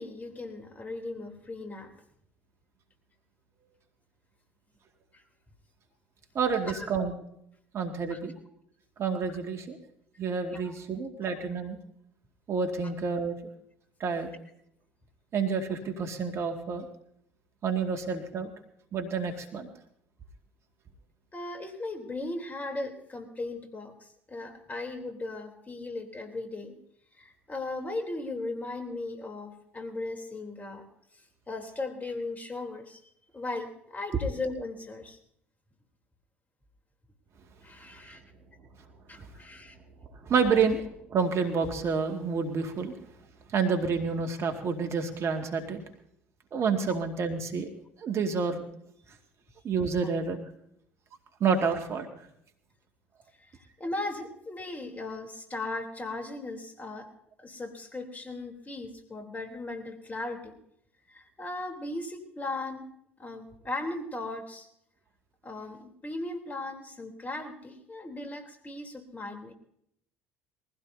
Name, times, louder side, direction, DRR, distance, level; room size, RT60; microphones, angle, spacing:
voice 1, 0.0-1.9 5.1-5.2 6.7-6.9 8.1-8.2 10.5-10.8 12.8-12.9 21.3-26.7 27.2-30.9 31.1-33.0 33.3-35.2 37.6-38.2 39.1-39.8 50.0-50.1 53.4-57.1 57.4-60.5 61.1-62.9 63.2-64.7 65.4-69.5, left 2 dB, 25° left, 5 dB, 3.3 m, -37 dB
voice 2, 6.3-7.1 7.7-8.3 9.0-9.8 10.2-11.8 12.5-13.4 14.0-14.3 15.3-16.9 17.6-18.5 18.9-19.7 38.0-38.1 39.2-39.3 40.2-42.9 43.5-45.8 46.5-47.7 48.0-48.6 49.6-50.4 51.4-52.2, right 5 dB, 45° right, 4 dB, 2.0 m, -29 dB
22.5 x 16.0 x 2.7 m, 0.73 s
hypercardioid pair, 60°, 6 cm